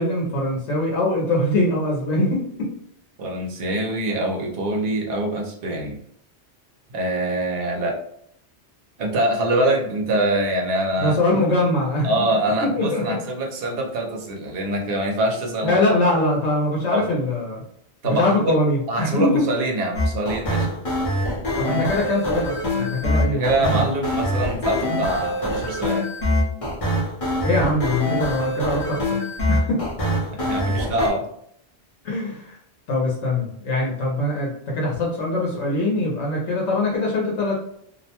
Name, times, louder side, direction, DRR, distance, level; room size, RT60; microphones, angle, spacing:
voice 1, 0.0-2.7 11.0-12.1 12.6-13.1 15.6-17.6 18.0-19.4 21.6-23.9 27.4-29.1 29.5-29.8 32.0-32.6 32.9-37.5, left 1 dB, 90° left, -3 dB, 1.0 m, -22 dB
voice 2, 3.2-6.0 6.9-8.0 9.0-11.2 12.0-15.8 16.9-17.1 18.0-18.6 18.9-20.8 23.1-26.1 30.3-31.3, right 1 dB, 60° right, 1 dB, 0.8 m, -24 dB
sound 1, 19.9-31.1, left 1 dB, 35° left, 0.7 m, -24 dB
2.5 x 2.1 x 2.8 m, 0.69 s
omnidirectional pair, 1.2 m